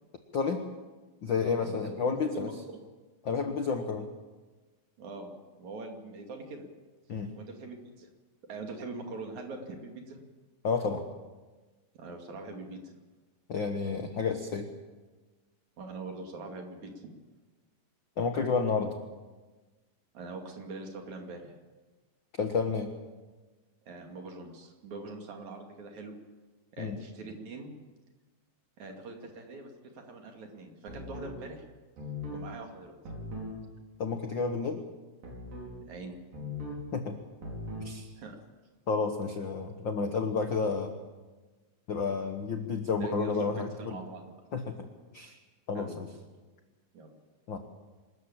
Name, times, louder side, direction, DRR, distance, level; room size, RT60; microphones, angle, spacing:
voice 1, 0.3-0.6 1.2-2.5 3.2-4.1 7.1-7.4 10.6-11.1 13.5-14.7 18.2-18.9 22.4-22.9 26.8-27.0 34.0-34.8 36.9-37.2 37.8-38.1 38.9-40.9 41.9-44.0 44.5-44.8 45.1-45.4 45.7-46.1 47.5-47.6, left 5 dB, 65° left, 6 dB, 1.2 m, -30 dB
voice 2, 1.4-2.8 5.0-5.3 5.6-6.7 7.4-8.1 8.5-10.2 11.9-12.9 15.8-17.1 20.1-21.5 23.8-26.1 26.7-27.7 28.8-31.6 32.3-33.0 35.9-36.2 38.2-38.4 42.9-44.4 45.7-46.0 46.9-47.1, right 3 dB, 55° right, 3 dB, 3.7 m, -43 dB
sound 1, 30.9-31.4 32.0-32.4 33.0-33.6 35.2-35.8 36.3-36.8 37.4-37.9, left 2 dB, 75° right, 6.5 m, -39 dB
25.0 x 14.0 x 8.7 m, 1.3 s
omnidirectional pair, 4.1 m